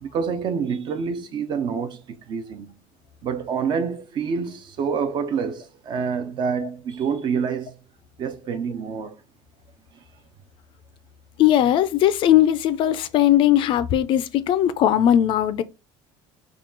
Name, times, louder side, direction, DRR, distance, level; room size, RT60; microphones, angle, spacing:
voice 1, 0.0-2.7 3.2-7.8 8.2-9.2 9.9-10.0, right 6 dB, 35° right, 0.4 m, -27 dB
voice 2, 11.4-15.6, left 11 dB, 40° left, 0.3 m, -19 dB
3.7 x 2.3 x 3.7 m
cardioid pair, 160°, 13 cm